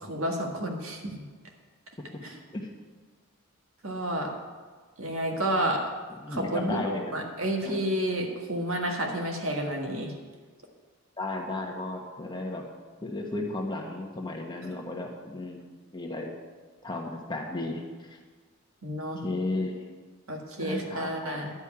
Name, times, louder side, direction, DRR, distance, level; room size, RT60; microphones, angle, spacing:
voice 1, 0.0-1.1 2.2-2.4 3.8-4.3 5.0-5.8 6.3-10.1 18.8-19.2 20.3-21.5, right 1 dB, 70° right, 1 dB, 1.8 m, -30 dB
voice 2, 6.2-7.2 7.6-7.8 11.2-12.6 13.0-15.6 15.9-16.3 16.8-18.2 19.2-19.8 20.6-21.4, left 2 dB, 20° left, 0 dB, 1.2 m, -34 dB
11.5 x 5.4 x 8.7 m, 1.5 s
head